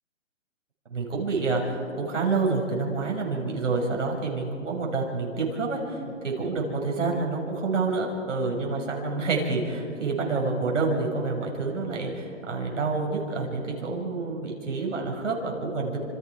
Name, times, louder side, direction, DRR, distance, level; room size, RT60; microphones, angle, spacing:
voice 1, 0.9-16.0, right 3 dB, 70° right, -1 dB, 5.8 m, -28 dB
26.5 x 26.5 x 4.7 m, 2.5 s
hypercardioid pair, 170°, 39 cm